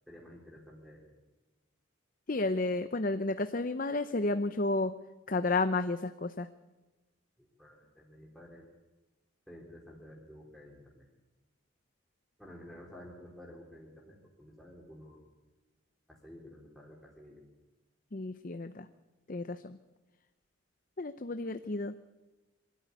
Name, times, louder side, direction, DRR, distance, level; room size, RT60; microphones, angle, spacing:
voice 1, 0.1-1.1 7.4-8.7 9.5-11.0 12.4-15.2 16.1-17.4, left 1 dB, ahead, -3 dB, 3.5 m, -52 dB
voice 2, 2.3-4.9 5.3-6.5 18.1-18.9 19.3-19.8 21.0-21.9, left 2 dB, 40° left, 11 dB, 0.7 m, -31 dB
24.5 x 13.5 x 9.6 m, 1.1 s
head